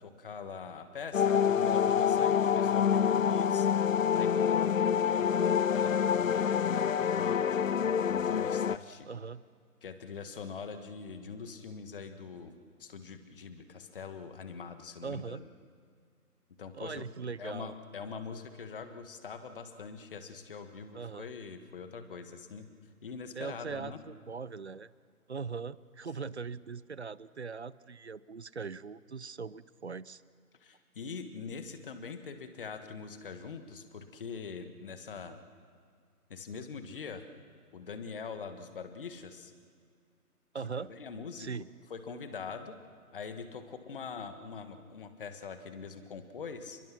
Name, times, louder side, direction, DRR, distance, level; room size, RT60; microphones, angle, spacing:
voice 1, 0.0-3.7 4.1-5.3 5.7-7.6 8.0-9.1 9.8-12.5 12.8-15.5 16.6-17.0 17.4-22.7 23.0-24.0 26.2-26.3 30.6-35.4 36.3-37.2 37.7-39.5 40.8-41.5 41.9-42.8 43.1-46.8, left 5 dB, 35° left, 8 dB, 1.6 m, -43 dB
sound 1, 1.1-8.8, left 8 dB, 60° left, 0.5 m, -27 dB
voice 2, 9.1-9.4 15.0-15.4 16.7-17.7 20.9-21.3 23.4-24.9 25.3-30.2 40.5-40.9 41.4-41.7, right 5 dB, 45° right, 19 dB, 0.6 m, -40 dB
29.5 x 22.0 x 6.0 m, 2.1 s
figure-of-eight pair, 150°, 46 cm